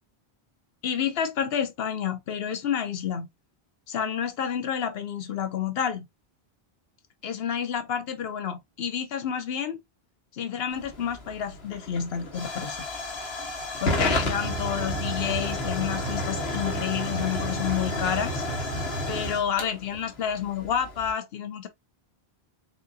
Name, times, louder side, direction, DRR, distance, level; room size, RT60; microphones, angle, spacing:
voice 1, 0.8-3.3 3.9-6.1 7.2-9.8 10.3-12.9 13.8-18.4 19.1-21.7, left 8 dB, 75° left, 1.0 m, -29 dB
Hiss / Fire / Tick, 10.7-21.1, left 1 dB, 90° left, 1.5 m, -31 dB
4.1 x 3.7 x 2.5 m
omnidirectional pair, 1.0 m